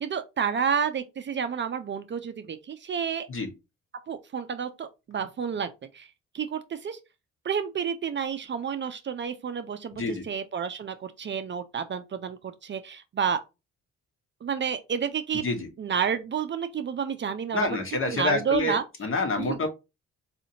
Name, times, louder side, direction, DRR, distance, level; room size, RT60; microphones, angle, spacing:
voice 1, 0.0-3.3 4.1-6.1 6.3-7.0 7.4-13.4 14.4-15.4 15.8-17.8 18.1-18.8 19.4-19.6, right 7 dB, 40° right, 0.5 m, -30 dB
voice 2, 9.9-10.3 15.3-15.7 17.5-19.7, left 3 dB, 45° left, 1.2 m, -28 dB
4.1 x 2.7 x 2.7 m
cardioid pair, 90°, 30 cm